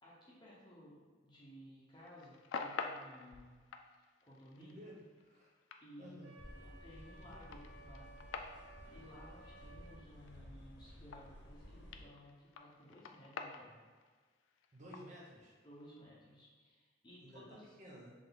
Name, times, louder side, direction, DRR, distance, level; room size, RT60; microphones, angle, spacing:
voice 1, 0.0-3.5 3.9-4.8 5.8-8.1 8.9-13.7 15.6-17.7, equal, 25° left, -6 dB, 0.9 m, -57 dB
sound 1, 1.9-11.7 11.9-16.0, left 5 dB, 90° left, 0.4 m, -48 dB
voice 2, 4.6-5.5 6.0-6.4 14.7-15.5 17.2-18.1, equal, 40° right, -5 dB, 0.9 m, -54 dB
Wind instrument woodwind instrument, 6.2-10.0, right 2 dB, 75° right, 0.8 m, -59 dB
sound 2, 6.4-12.0, left 1 dB, 70° left, 0.9 m, -55 dB
3.7 x 3.4 x 3.9 m, 1.4 s
head